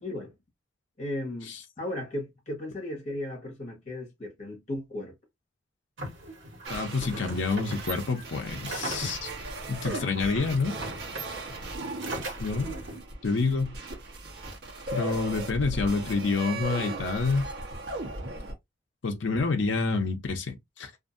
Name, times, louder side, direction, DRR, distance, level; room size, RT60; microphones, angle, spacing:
voice 1, 1.0-5.1, left 1 dB, 35° left, 1.2 m, -36 dB
sound 1, 6.0-13.0, right 2 dB, 70° right, 1.2 m, -39 dB
sound 2, 6.6-18.5, right 2 dB, 55° right, 1.0 m, -38 dB
voice 2, 6.7-9.3 9.7-10.7 12.4-12.7 13.2-13.7 14.9-17.5 19.0-20.9, left 4 dB, 70° left, 0.6 m, -28 dB
2.6 x 2.6 x 2.5 m
head